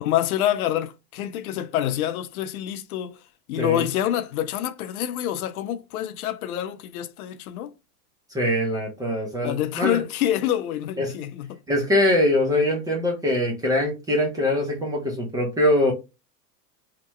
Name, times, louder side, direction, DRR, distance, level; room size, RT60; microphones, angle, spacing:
voice 1, 0.0-3.2 3.5-7.7 9.4-11.6, left 11 dB, 65° left, 0.5 m, -27 dB
voice 2, 3.6-3.9 8.3-10.0 11.0-11.1 11.7-15.9, left 1 dB, 10° right, 0.4 m, -23 dB
2.9 x 2.1 x 3.0 m
hypercardioid pair, 110°, 49 cm